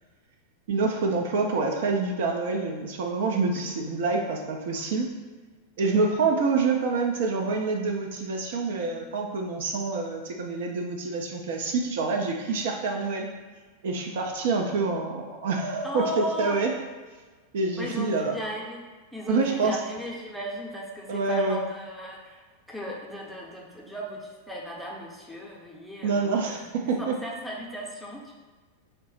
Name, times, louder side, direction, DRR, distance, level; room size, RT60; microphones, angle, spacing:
voice 1, 0.7-5.1 5.8-13.3 13.8-16.7 17.5-18.3 19.3-19.8 21.1-21.6 26.0-27.2, right 4 dB, 55° right, 1 dB, 0.4 m, -27 dB
voice 2, 15.8-16.6 17.8-18.8 19.1-26.6 27.0-28.3, equal, ahead, -3 dB, 0.6 m, -36 dB
3.2 x 2.0 x 3.9 m, 1.4 s
figure-of-eight pair, 90°, 0 cm